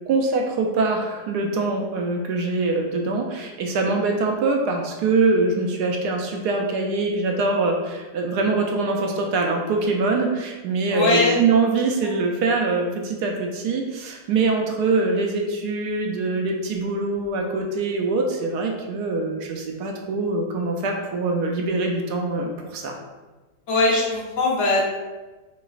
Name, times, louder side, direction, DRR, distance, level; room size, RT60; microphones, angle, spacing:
voice 1, 0.1-22.9, right 3 dB, 75° right, 2 dB, 1.1 m, -23 dB
voice 2, 10.9-11.4 12.0-12.1 23.7-24.8, left 2 dB, 50° left, -3 dB, 1.0 m, -20 dB
4.6 x 3.0 x 2.4 m, 1.2 s
omnidirectional pair, 1.8 m